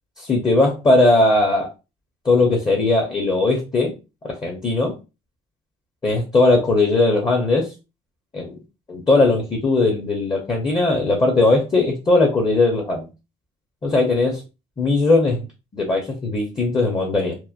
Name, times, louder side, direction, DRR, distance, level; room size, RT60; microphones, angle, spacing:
voice 1, 0.2-1.7 2.2-3.9 4.2-4.9 6.0-7.7 8.3-8.6 8.9-13.1 13.8-14.4 14.8-15.4 15.7-17.4, left 2 dB, 25° left, 1 dB, 0.6 m, -19 dB
2.9 x 2.0 x 2.4 m, 0.28 s
cardioid pair, 110°, 17 cm